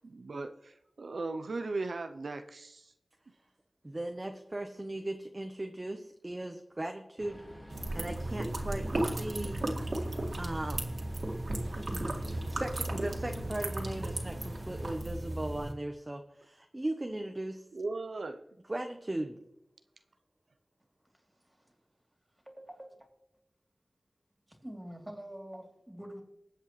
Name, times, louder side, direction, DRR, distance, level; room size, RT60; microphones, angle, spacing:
voice 1, 0.1-2.9 11.7-11.9 17.7-18.4, right 3 dB, 85° right, 7 dB, 0.6 m, -38 dB
voice 2, 3.8-7.4 7.9-9.6 10.4-10.9 11.8-17.6 18.7-19.4, right 1 dB, 30° right, 4 dB, 1.0 m, -38 dB
sound 1, 7.2-15.0, equal, 5° left, 1.5 m, -50 dB
sound 2, 7.7-15.7, right 1 dB, 65° right, 2.1 m, -35 dB
voice 3, 21.1-21.7 22.4-23.1 24.5-26.2, right 1 dB, 15° right, 2 dB, 3.2 m, -46 dB
20.5 x 8.1 x 3.2 m, 0.82 s
wide cardioid pair, 55°, 0 cm